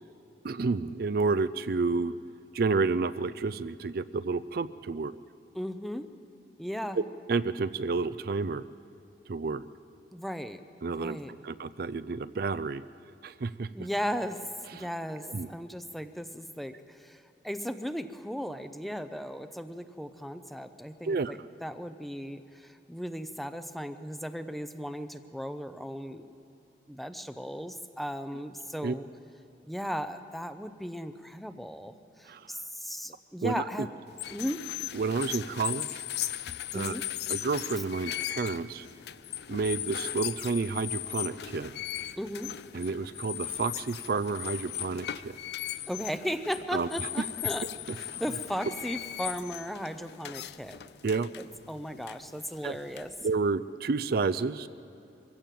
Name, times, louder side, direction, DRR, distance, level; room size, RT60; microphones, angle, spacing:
voice 1, 0.4-2.1 2.5-5.2 6.9-7.0 7.3-8.7 9.3-9.6 10.8-11.2 11.4-12.8 13.2-13.9 14.7-14.9 15.2-15.5 21.0-21.3 28.8-28.9 32.3-32.5 33.4-33.6 34.9-36.0 36.7-37.0 37.3-38.9 39.5-41.7 42.7-45.4 46.7-47.1 48.1-48.2 51.0-51.3 52.6-52.8 53.2-54.7, right 4 dB, 55° right, 13 dB, 0.4 m, -30 dB
voice 2, 5.5-6.1 6.6-7.0 10.1-10.6 10.9-11.3 13.7-14.4 14.7-26.3 26.9-29.1 29.6-33.9 34.3-34.6 36.7-37.0 42.2-42.5 45.9-47.6 48.0-50.8 51.4-53.1, equal, ahead, 10 dB, 0.6 m, -36 dB
sound 1, 34.1-53.4, left 12 dB, 65° left, 0.5 m, -38 dB
23.0 x 16.0 x 7.6 m, 2.6 s
head